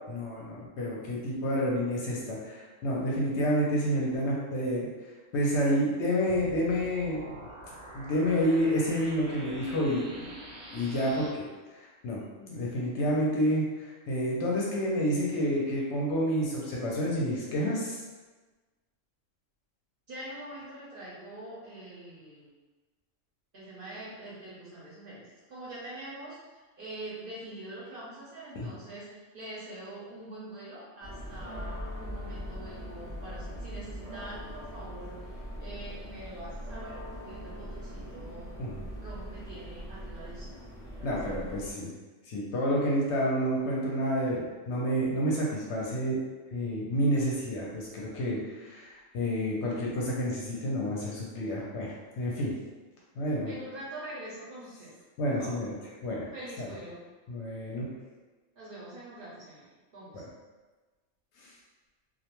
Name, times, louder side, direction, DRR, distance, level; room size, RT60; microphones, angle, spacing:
voice 1, 0.1-4.9 5.3-7.4 7.9-18.0 28.5-28.7 38.6-38.8 41.0-41.9 42.3-46.2 46.5-52.5 53.2-53.5 55.2-55.7 56.0-56.3 56.6-56.7 57.3-57.9 61.4-61.5, equal, 65° left, -4 dB, 0.8 m, -29 dB
sound 1, 6.3-11.3, right 1 dB, 90° right, 1.0 m, -46 dB
voice 2, 20.1-22.5 23.5-38.5 39.0-40.6 41.0-41.2 53.5-54.9 55.2-55.6 56.3-57.0 58.6-60.2, right 1 dB, 55° right, -8 dB, 0.7 m, -44 dB
sound 2, 31.0-41.7, equal, 40° left, 0.5 m, -41 dB
2.3 x 2.1 x 2.9 m, 1.3 s
omnidirectional pair, 1.3 m